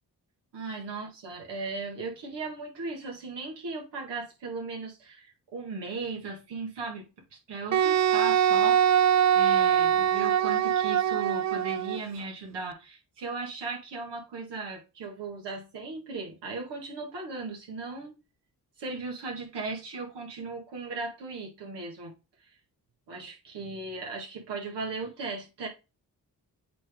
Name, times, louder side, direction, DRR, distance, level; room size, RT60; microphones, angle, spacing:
voice 1, 0.5-7.0 7.5-8.8 9.3-18.2 18.8-22.1 23.1-25.7, right 3 dB, 90° right, 2.2 m, -37 dB
Wind instrument woodwind instrument, 7.7-12.0, right 9 dB, 45° right, 0.4 m, -23 dB
8.4 x 3.4 x 3.9 m
supercardioid pair, 45°, 41 cm